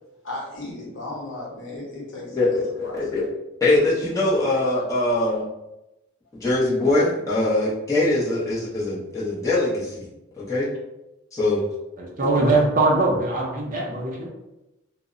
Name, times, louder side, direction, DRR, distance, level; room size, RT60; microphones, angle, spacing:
voice 1, 0.2-2.6 2.8-3.2, left 2 dB, 70° left, -4 dB, 0.9 m, -35 dB
voice 2, 2.3-3.3 3.6-5.5 6.3-10.1 10.4-10.7 11.3-11.6 12.4-12.5, left 2 dB, 15° left, -8 dB, 0.6 m, -22 dB
voice 3, 12.0-14.3, right 2 dB, 40° right, -2 dB, 0.5 m, -21 dB
2.0 x 2.0 x 3.6 m, 0.95 s
head